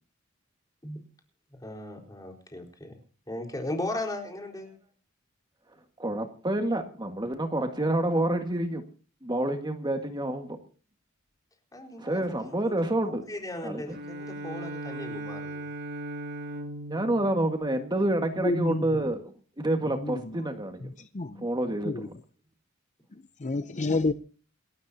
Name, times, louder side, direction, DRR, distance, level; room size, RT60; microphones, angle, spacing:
voice 1, 1.6-3.0 3.3-4.7 11.7-15.7, left 1 dB, 20° left, 4.4 m, -37 dB
voice 2, 6.0-8.8 9.2-10.6 12.0-13.2 13.6-14.0 16.9-20.9 21.4-22.1, right 1 dB, 20° right, 1.7 m, -28 dB
Bowed string instrument, 13.9-18.5, right 1 dB, 55° right, 2.5 m, -39 dB
voice 3, 18.4-18.8 20.0-20.4 21.0-21.5 21.9-22.1 23.4-24.1, left 2 dB, 35° left, 0.7 m, -29 dB
28.0 x 13.0 x 2.8 m
head